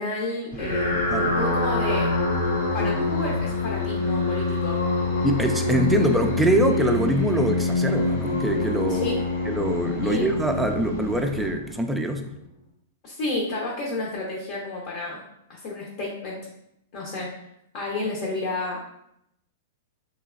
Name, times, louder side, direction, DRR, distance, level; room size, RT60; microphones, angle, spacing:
voice 1, 0.0-0.9 1.3-2.1 2.7-4.8 8.9-9.2 10.0-10.3 13.0-15.2 15.5-16.4 16.9-17.3 17.7-18.8, left 2 dB, 55° left, -2 dB, 0.8 m, -31 dB
sound 1, 0.5-12.0, left 2 dB, 80° left, 1.3 m, -25 dB
voice 2, 5.2-9.2 9.4-12.3, right 1 dB, 5° right, 4 dB, 0.4 m, -24 dB
3.3 x 2.9 x 2.4 m, 0.79 s
hypercardioid pair, 125°, 0 cm